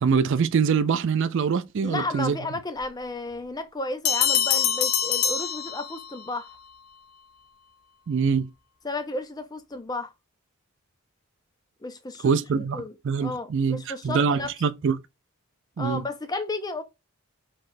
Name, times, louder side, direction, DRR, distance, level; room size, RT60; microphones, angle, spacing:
voice 1, 0.0-2.4 8.1-8.5 12.2-15.0 15.8-16.0, right 6 dB, 55° right, 0.4 m, -24 dB
voice 2, 1.8-6.6 8.8-10.1 11.8-12.9 13.2-14.5 15.8-16.8, left 2 dB, 15° left, 0.5 m, -33 dB
Bell, 4.0-6.3, left 8 dB, 70° left, 0.8 m, -24 dB
5.8 x 3.1 x 2.6 m
head